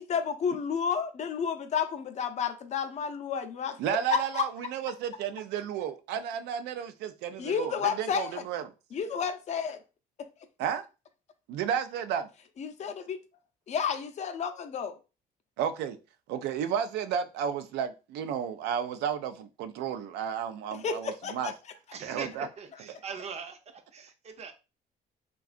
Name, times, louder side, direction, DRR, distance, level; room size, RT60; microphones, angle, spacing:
voice 1, 0.0-3.8 4.1-4.4 7.4-8.4 8.9-9.8 10.2-10.3 12.6-13.2 13.7-15.0 20.8-21.5, left 6 dB, 45° left, 0.5 m, -31 dB
voice 2, 3.8-8.7 10.6-10.8 11.5-12.3 15.6-16.0 16.3-21.5 22.0-22.5, right 8 dB, 90° right, 0.4 m, -32 dB
voice 3, 21.9-24.5, right 5 dB, 40° right, 0.6 m, -41 dB
3.6 x 2.3 x 2.4 m
cardioid pair, 110°, 17 cm